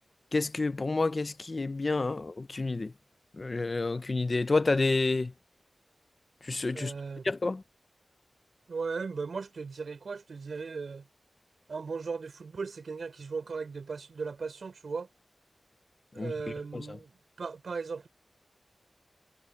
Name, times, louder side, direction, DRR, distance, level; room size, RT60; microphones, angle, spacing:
voice 1, 0.3-2.9 3.4-5.3 6.4-6.9 7.2-7.6 16.2-16.3 16.7-17.0, left 3 dB, 45° left, 0.7 m, -29 dB
voice 2, 6.7-7.3 8.7-11.1 11.7-15.1 16.1-18.1, right 4 dB, 80° right, 6.1 m, -37 dB
wide cardioid pair, 85°, 0 cm